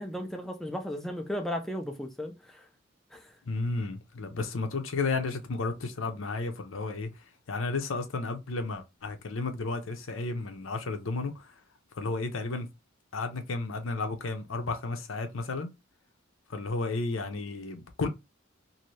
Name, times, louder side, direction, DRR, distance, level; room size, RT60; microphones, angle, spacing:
voice 1, 0.0-2.6 3.1-3.2, equal, ahead, 0.4 m, -35 dB
voice 2, 3.5-11.5 12.0-12.7 13.1-15.7 16.5-18.1, left 3 dB, 75° left, 0.7 m, -33 dB
2.7 x 2.7 x 3.1 m
head